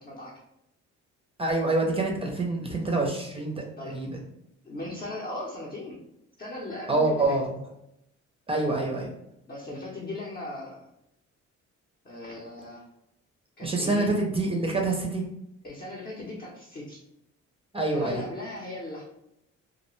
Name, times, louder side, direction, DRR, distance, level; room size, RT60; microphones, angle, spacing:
voice 1, 0.0-0.3 3.8-4.0 4.6-6.0 6.4-7.4 9.5-10.8 12.0-12.8 13.6-14.1 15.6-17.0 17.9-19.0, left 2 dB, 30° left, -5 dB, 0.7 m, -38 dB
voice 2, 1.4-4.2 6.9-7.6 8.5-9.1 13.6-15.2 17.7-18.2, right 2 dB, 20° right, 0 dB, 0.5 m, -26 dB
2.4 x 2.1 x 3.0 m, 0.81 s
cardioid pair, 90°, 30 cm